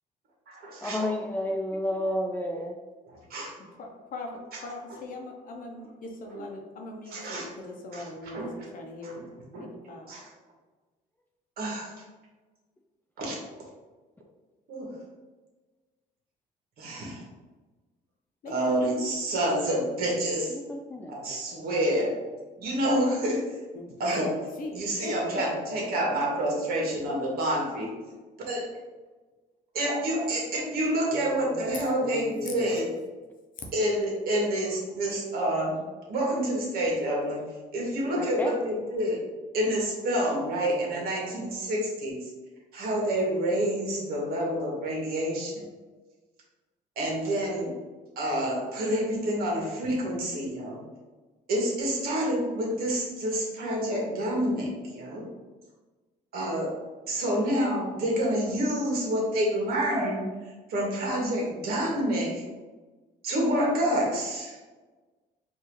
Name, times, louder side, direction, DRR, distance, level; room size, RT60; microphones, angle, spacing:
voice 1, 0.8-2.8 6.4-6.5 20.5-21.1 31.1-31.6 32.0-32.7 38.2-38.5 40.9-41.0, left 1 dB, 10° left, 1 dB, 0.3 m, -32 dB
voice 2, 3.8-4.3 4.6-9.2 9.5-10.1 18.4-19.1 23.7-25.1, left 2 dB, 55° left, 2 dB, 0.8 m, -41 dB
voice 3, 7.1-7.5 7.9-8.5 9.0-9.3 9.5-9.7 10.1-10.3 11.6-12.0 13.2-13.3 14.7-14.9 16.8-17.2 18.5-20.5 21.1-22.1 22.6-23.4 24.0-24.3 24.7-27.9 28.5-28.8 29.7-32.9 33.7-35.8 36.1-37.4 37.7-39.2 39.5-42.2 42.7-45.7 46.9-47.7 48.1-50.8 51.5-55.2 56.3-56.8 57.1-60.2 60.7-62.4 63.2-64.6, right 1 dB, 65° right, -2 dB, 1.5 m, -28 dB
4.6 x 2.7 x 3.1 m, 1.3 s
cardioid pair, 110°, 17 cm